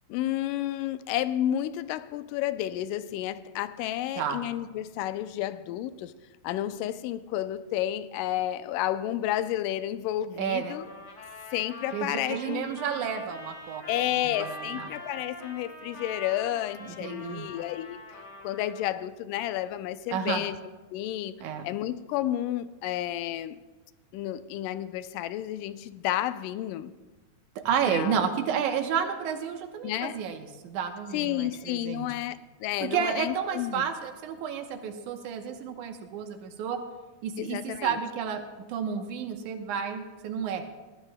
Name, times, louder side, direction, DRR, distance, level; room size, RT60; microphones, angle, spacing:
voice 1, 0.1-6.1 6.4-10.9 11.5-12.7 13.9-18.0 18.4-20.6 20.9-21.3 21.6-23.6 24.1-26.9 27.9-28.2 29.8-30.2 31.1-33.9 37.4-38.0, left 13 dB, 85° left, 2.2 m, -31 dB
voice 2, 10.4-10.8 11.9-14.9 16.8-17.5 20.1-20.4 21.4-21.7 27.6-32.1 32.8-36.8 37.2-38.4 38.7-40.7, right 7 dB, 75° right, 2.3 m, -31 dB
Trumpet, 10.6-18.9, left 1 dB, 30° left, 1.7 m, -44 dB
20.0 x 14.5 x 2.2 m
omnidirectional pair, 3.7 m